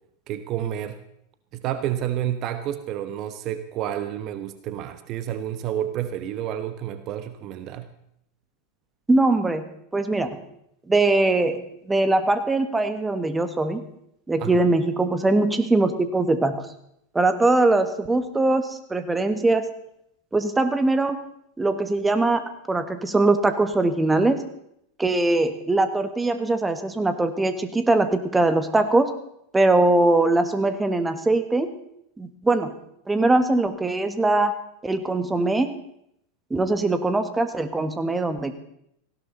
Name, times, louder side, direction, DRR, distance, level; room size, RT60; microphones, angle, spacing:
voice 1, 0.3-1.0 1.5-7.9 14.4-14.7, right 11 dB, 45° right, 11 dB, 1.0 m, -30 dB
voice 2, 9.1-9.6 9.9-10.4 10.9-13.8 14.3-16.7 17.1-19.7 20.3-21.2 21.6-22.4 22.7-24.4 25.0-29.1 29.5-31.7 32.2-32.7 33.1-34.5 34.8-35.7 36.5-38.6, right 2 dB, 10° right, 10 dB, 1.6 m, -21 dB
18.0 x 16.5 x 4.1 m, 0.75 s
hypercardioid pair, 90°, 0 cm